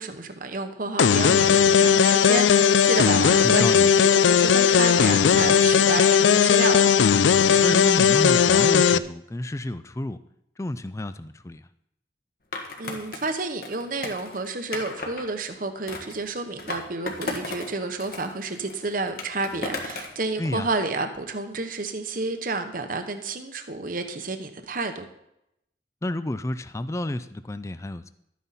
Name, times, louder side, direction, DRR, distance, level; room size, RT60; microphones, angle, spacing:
voice 1, 0.0-6.9 12.8-25.1, right 3 dB, 50° right, 7 dB, 1.0 m, -30 dB
sound 1, 1.0-9.0, left 7 dB, 90° left, 0.4 m, -18 dB
voice 2, 3.4-3.9 7.6-10.2 10.6-11.6 20.4-20.7 26.0-28.1, left 1 dB, 15° left, 12 dB, 0.4 m, -30 dB
Skateboard, 12.5-15.2 15.9-17.7 18.0-20.2, left 3 dB, 55° left, 1.6 m, -35 dB
12.5 x 9.4 x 4.2 m, 0.80 s
head